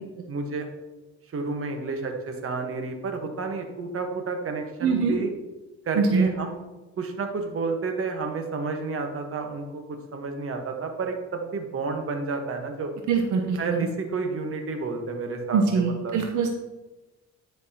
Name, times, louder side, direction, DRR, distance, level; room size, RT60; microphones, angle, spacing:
voice 1, 0.3-0.7 1.3-5.3 5.8-6.6 7.0-12.9 13.6-16.2, right 4 dB, 50° right, 4 dB, 1.3 m, -30 dB
voice 2, 4.8-5.2 5.9-6.3 13.1-13.8 15.5-16.5, right 5 dB, 75° right, 3 dB, 0.9 m, -23 dB
9.8 x 5.9 x 2.9 m, 1.1 s
cardioid pair, 90°, 30 cm